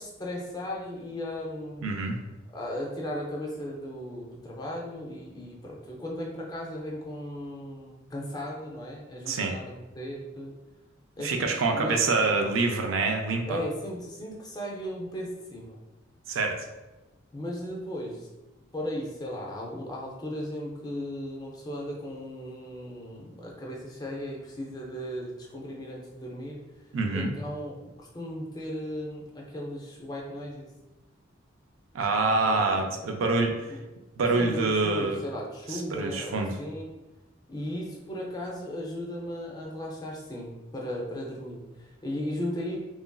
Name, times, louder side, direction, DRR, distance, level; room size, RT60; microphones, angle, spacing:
voice 1, 0.0-1.9 2.5-10.5 11.2-12.0 13.5-15.8 17.3-18.3 18.7-26.6 27.1-30.7 32.4-32.9 33.7-33.8 34.3-36.9 37.5-42.8, left 1 dB, 20° left, -2 dB, 0.4 m, -36 dB
voice 2, 1.8-2.2 9.3-9.6 11.2-13.6 16.3-16.7 26.9-27.3 31.9-33.7 34.2-35.2 35.7-36.6, right 3 dB, 80° right, 3 dB, 0.4 m, -26 dB
2.9 x 2.4 x 2.2 m, 1.1 s
head